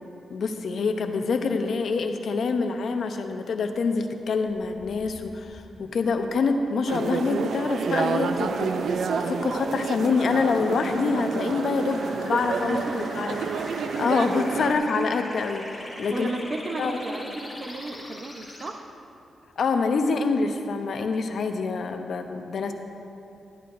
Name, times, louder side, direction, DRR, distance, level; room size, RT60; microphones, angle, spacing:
voice 1, 0.3-12.8 13.1-15.6 16.0-16.3 16.8-17.0 19.6-22.7, left 4 dB, 65° left, 6 dB, 0.6 m, -26 dB
sound 1, 4.5-18.7, left 1 dB, 25° left, 2.3 m, -43 dB
sound 2, 6.9-14.7, right 5 dB, 70° right, 0.4 m, -29 dB
voice 2, 12.6-13.1 16.1-18.8, right 2 dB, 40° right, 5 dB, 0.7 m, -33 dB
12.5 x 11.0 x 2.5 m, 2.7 s
cardioid pair, 100°, 0 cm